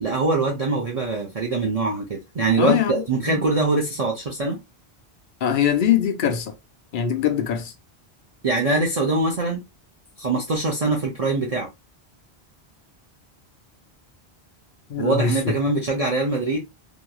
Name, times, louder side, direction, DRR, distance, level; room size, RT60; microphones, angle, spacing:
voice 1, 0.0-4.6 8.4-9.6 10.2-11.7 15.0-16.6, right 3 dB, 45° right, 0.6 m, -23 dB
voice 2, 2.6-2.9 3.3-3.4 5.4-6.5 6.9-7.7 14.9-15.5, left 8 dB, 60° left, 0.6 m, -22 dB
2.9 x 2.5 x 2.2 m
omnidirectional pair, 1.1 m